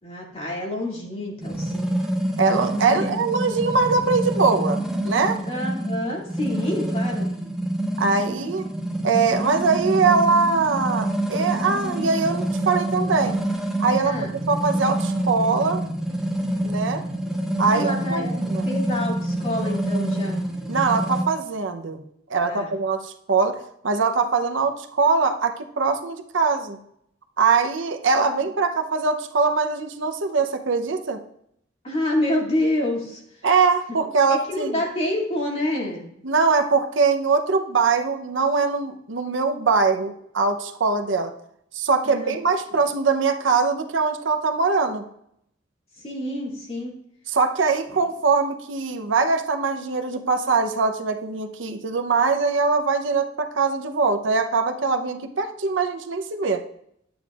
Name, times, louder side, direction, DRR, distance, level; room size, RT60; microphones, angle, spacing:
voice 1, 0.0-1.9 2.9-3.1 5.4-7.3 14.0-14.3 17.6-20.4 22.4-22.7 31.8-33.2 34.3-36.1 42.0-42.3 46.0-46.9, left 1 dB, 30° left, -2 dB, 2.4 m, -28 dB
sound 1, 1.4-21.2, right 1 dB, 5° right, 1.2 m, -27 dB
voice 2, 2.4-5.4 8.0-8.6 9.0-13.4 13.8-14.2 14.5-15.8 16.6-17.0 17.6-18.7 20.7-22.0 22.3-26.8 27.4-31.2 33.4-34.8 36.2-41.3 41.7-45.1 47.3-56.6, right 4 dB, 70° right, 6 dB, 0.7 m, -22 dB
11.0 x 8.7 x 2.4 m, 0.73 s
head